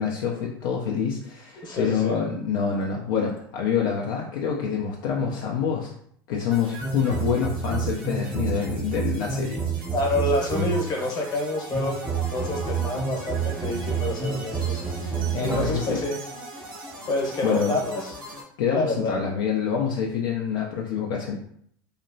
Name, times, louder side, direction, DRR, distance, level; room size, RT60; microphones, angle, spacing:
voice 1, 0.0-5.9 6.3-9.6 15.1-16.0 17.4-17.8 18.6-21.3, left 7 dB, 65° left, -1 dB, 0.4 m, -26 dB
voice 2, 1.6-2.2 9.9-16.2 17.1-18.1 18.7-19.2, left 1 dB, 35° left, 0 dB, 1.0 m, -28 dB
sound 1, 6.5-18.4, right 1 dB, 85° right, 0.9 m, -41 dB
sound 2, 6.8-11.0 11.7-16.0, right 5 dB, 15° right, 0.5 m, -29 dB
2.8 x 2.0 x 2.6 m, 0.66 s
hypercardioid pair, 85°, 12 cm